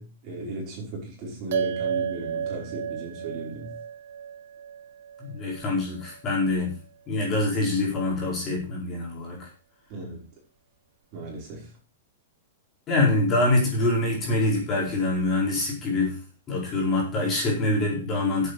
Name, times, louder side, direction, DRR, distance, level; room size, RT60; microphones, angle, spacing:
voice 1, 0.0-3.7 9.9-10.2 11.1-11.7, right 2 dB, 30° right, -2 dB, 5.7 m, -36 dB
sound 1, 1.5-6.2, right 8 dB, 55° right, 2.0 m, -33 dB
voice 2, 5.2-6.7 7.1-9.5 12.9-16.2 16.5-18.5, left 2 dB, 20° left, -3 dB, 4.9 m, -25 dB
10.0 x 8.1 x 6.8 m, 0.36 s
supercardioid pair, 170°, 0 cm